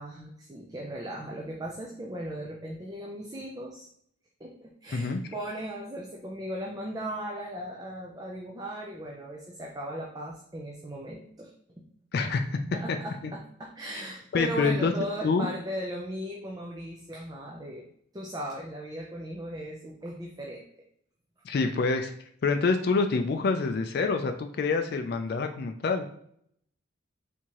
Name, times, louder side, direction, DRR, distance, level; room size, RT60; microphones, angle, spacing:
voice 1, 0.0-3.9 4.4-11.5 12.7-17.8 18.1-20.7 21.5-21.7, equal, 20° right, -1 dB, 0.4 m, -37 dB
voice 2, 12.1-12.6 13.2-13.3 14.3-14.9 15.2-15.5 21.4-22.1 22.4-26.0, left 4 dB, 50° left, 6 dB, 0.3 m, -26 dB
4.4 x 3.6 x 2.9 m, 0.68 s
head